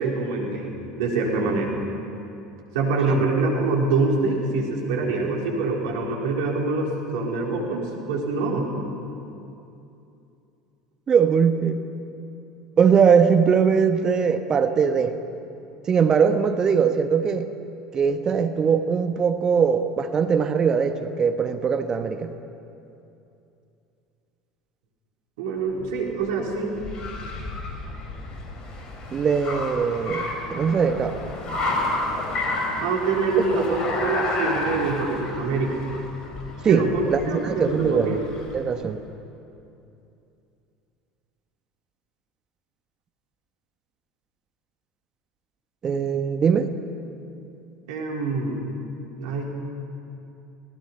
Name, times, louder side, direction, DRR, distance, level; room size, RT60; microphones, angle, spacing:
voice 1, 0.0-1.8 2.7-8.7 25.4-26.8 32.8-35.9 36.7-38.2 47.9-48.6 49.2-49.4, right 3 dB, 70° right, -1 dB, 4.0 m, -25 dB
voice 2, 11.1-11.8 12.8-15.1 15.9-17.5 17.9-22.3 29.1-31.2 33.5-33.6 36.6-38.2 38.5-39.0 45.8-46.7, right 6 dB, 35° right, 8 dB, 1.2 m, -21 dB
Car, 25.8-38.7, left 2 dB, 40° left, 4.8 m, -31 dB
27.5 x 18.5 x 5.6 m, 2.7 s
hypercardioid pair, 75°, 2 cm